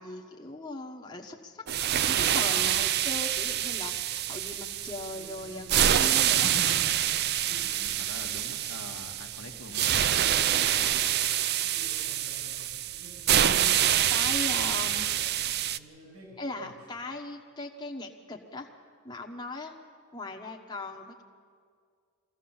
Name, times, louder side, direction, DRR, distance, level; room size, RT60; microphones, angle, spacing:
voice 1, 0.0-1.6 2.1-6.5 10.3-11.0 13.4-13.8 14.1-15.1 16.4-18.7 19.0-19.7 20.1-21.2, left 2 dB, 20° left, 1 dB, 1.2 m, -39 dB
sound 1, 1.7-15.8, right 11 dB, 45° right, 0.4 m, -26 dB
voice 2, 2.5-3.0 6.3-7.2 7.5-9.9 12.5-12.7, left 2 dB, 65° left, 3 dB, 1.3 m, -43 dB
sound 2, 5.0-6.0 7.0-8.0 8.4-9.0 9.3-9.4 9.6-10.8 11.5-15.2 15.7-17.1, equal, 80° right, 6.4 m, -52 dB
23.0 x 16.0 x 7.2 m, 2.1 s
head